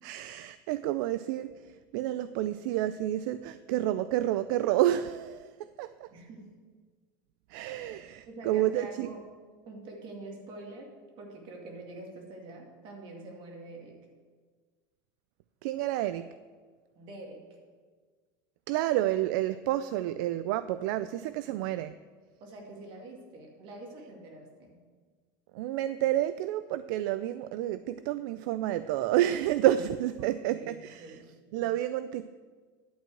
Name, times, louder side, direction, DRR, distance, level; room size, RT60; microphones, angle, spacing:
voice 1, 0.0-6.1 7.5-9.1 15.6-16.3 18.7-21.9 25.5-31.2 31.5-32.3, right 13 dB, 70° right, 13 dB, 0.4 m, -29 dB
voice 2, 6.1-6.5 8.3-9.3 9.7-10.9 11.2-14.0 17.0-17.5 20.9-21.1 22.4-24.8 30.2-31.3, right 2 dB, 50° right, 1 dB, 2.3 m, -46 dB
11.0 x 4.6 x 7.7 m, 1.5 s
supercardioid pair, 120°, 11 cm